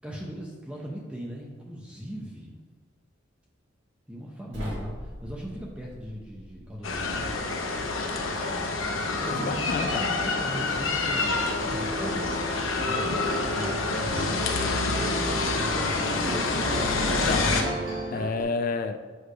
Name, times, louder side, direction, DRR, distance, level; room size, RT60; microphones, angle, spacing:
voice 1, 0.0-2.6 4.1-7.3 9.2-12.3 12.8-14.4 14.8-16.0, equal, 5° right, -3 dB, 0.6 m, -39 dB
sound 1, 4.5-7.6, equal, 70° right, 1.9 m, -42 dB
sound 2, 6.8-17.6, left 3 dB, 85° left, 0.7 m, -27 dB
voice 2, 9.3-10.1 17.0-17.5 18.1-19.0, left 4 dB, 45° left, 10 dB, 0.3 m, -30 dB
sound 3, 11.8-18.4, right 2 dB, 45° right, 1.2 m, -35 dB
6.5 x 3.3 x 5.0 m, 1.5 s
head